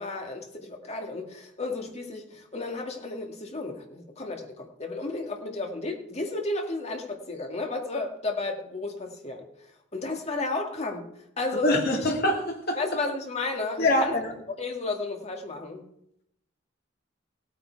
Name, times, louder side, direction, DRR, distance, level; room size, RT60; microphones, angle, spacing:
voice 1, 0.0-9.5 9.9-11.1 11.4-11.7 12.0-12.1 12.8-14.1 14.6-15.9, left 3 dB, 35° left, 3 dB, 2.0 m, -33 dB
voice 2, 11.6-12.8 13.8-14.3, left 1 dB, 55° left, 1 dB, 2.6 m, -24 dB
17.0 x 9.1 x 4.7 m, 0.77 s
head